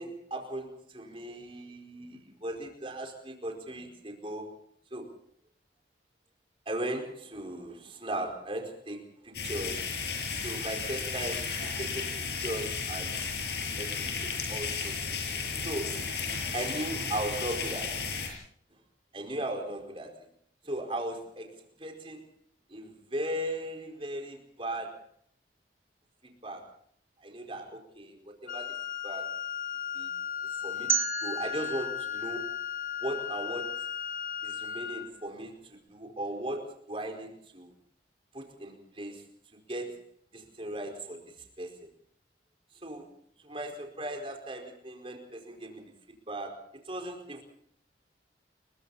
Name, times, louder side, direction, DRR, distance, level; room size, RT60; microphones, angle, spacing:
voice 1, 0.0-4.5 4.9-5.1 6.6-9.9 10.4-13.2 13.8-15.0 15.6-16.0 16.5-18.0 19.1-20.3 20.6-21.5 21.8-22.3 22.7-25.0 26.4-26.7 27.2-28.7 29.0-29.3 29.9-30.1 30.6-30.9 31.2-32.5 33.0-33.8 34.4-37.7 38.3-39.2 39.7-40.0 40.3-41.2 41.6-41.9 42.8-43.1 43.4-47.4, right 1 dB, 30° right, 3 dB, 4.8 m, -37 dB
sound 1, 9.3-18.3, left 5 dB, 65° left, 7.2 m, -34 dB
Wind instrument woodwind instrument, 28.5-35.1, left 10 dB, 45° left, 1.6 m, -36 dB
sound 2, 30.9-33.8, right 6 dB, 15° right, 0.9 m, -34 dB
29.0 x 23.0 x 4.2 m, 0.65 s
head